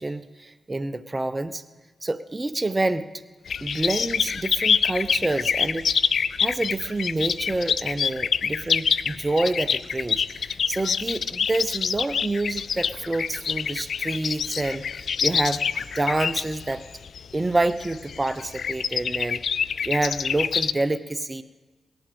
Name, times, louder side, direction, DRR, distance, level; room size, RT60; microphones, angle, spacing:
voice 1, 0.0-1.6 2.0-3.1 3.6-5.9 6.4-16.8 17.3-19.4 19.8-21.4, right 2 dB, 30° right, 12 dB, 0.8 m, -27 dB
sound 1, 3.5-20.7, left 7 dB, 70° left, 0.4 m, -26 dB
18.0 x 11.5 x 5.2 m, 1.3 s
supercardioid pair, 40°, 0 cm